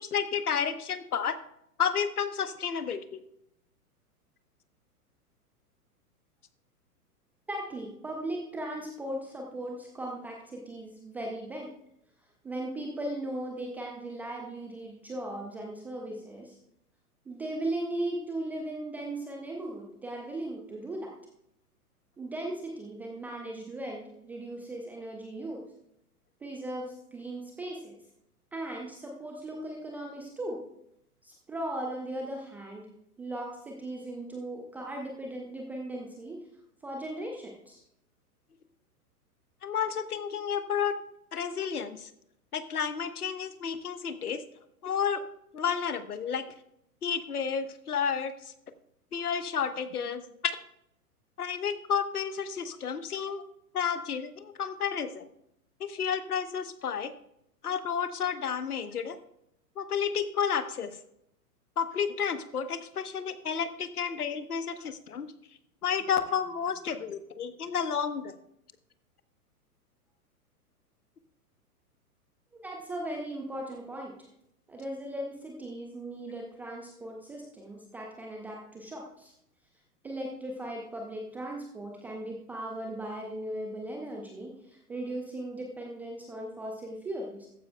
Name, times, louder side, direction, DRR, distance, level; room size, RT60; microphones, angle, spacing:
voice 1, 0.0-1.3 1.8-3.2 39.6-41.0 41.3-42.1 42.5-44.4 44.8-45.2 45.5-46.5 47.0-48.3 49.1-50.5 51.4-53.4 53.7-55.3 55.8-57.1 57.6-59.2 59.8-60.9 61.8-65.3 65.8-68.3, left 7 dB, 70° left, 11 dB, 1.2 m, -31 dB
voice 2, 7.5-11.7 12.4-16.6 17.3-21.1 22.2-25.6 26.4-28.0 28.5-30.6 31.2-36.4 36.8-37.8 72.6-74.2 74.7-79.3 80.0-87.5, right 1 dB, 5° right, 0 dB, 0.4 m, -38 dB
15.0 x 14.0 x 2.3 m, 0.77 s
figure-of-eight pair, 110°, 46 cm